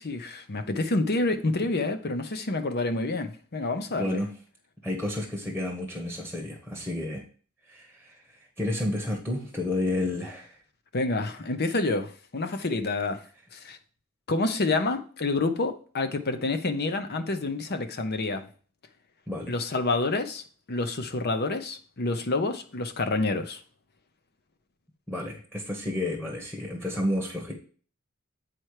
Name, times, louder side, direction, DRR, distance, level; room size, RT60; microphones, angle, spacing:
voice 1, 0.0-4.2 10.9-13.2 13.5-13.8 14.3-18.5 19.5-23.6, left 2 dB, 50° left, 0.8 m, -28 dB
voice 2, 3.9-4.3 4.8-7.2 7.7-10.5 19.3-19.5 25.1-27.5, left 1 dB, 5° left, 1.2 m, -31 dB
8.2 x 4.5 x 4.8 m
head